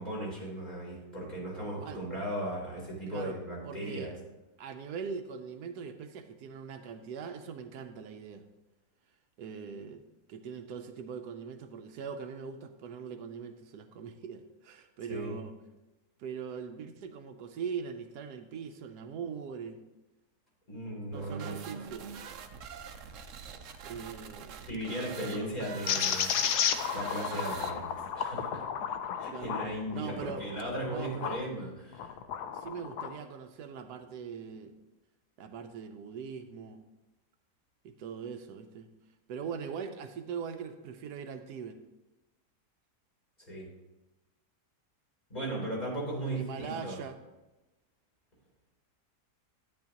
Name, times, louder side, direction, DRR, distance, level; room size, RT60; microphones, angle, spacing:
voice 1, 0.0-4.1 15.1-15.3 20.7-21.5 24.7-28.6 29.2-32.2 43.5-43.7 45.3-47.0, right 1 dB, 25° left, -5 dB, 3.3 m, -37 dB
voice 2, 3.1-3.4 3.6-4.1 4.6-8.4 9.4-10.0 10.3-15.5 16.2-19.8 21.1-22.1 23.8-24.7 25.3-25.5 29.3-29.6 29.9-30.5 30.9-31.4 32.5-34.8 35.4-36.8 37.8-38.9 39.3-41.8 46.2-47.2, right 6 dB, 80° right, 7 dB, 1.2 m, -41 dB
sound 1, 21.1-28.1, right 7 dB, 65° right, 0.9 m, -44 dB
sound 2, 25.9-31.4 31.9-33.1, left 8 dB, 80° left, 1.2 m, -33 dB
10.5 x 9.4 x 2.9 m, 1.0 s
omnidirectional pair, 1.7 m